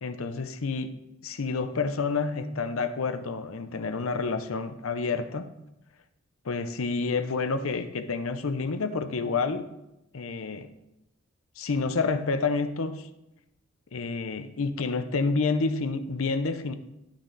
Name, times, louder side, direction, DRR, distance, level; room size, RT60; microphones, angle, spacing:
voice 1, 0.0-0.9 1.2-5.5 6.4-9.7 10.1-10.7 11.6-13.1 13.9-16.7, left 4 dB, 75° left, 9 dB, 0.7 m, -29 dB
11.5 x 6.4 x 4.0 m, 0.89 s
head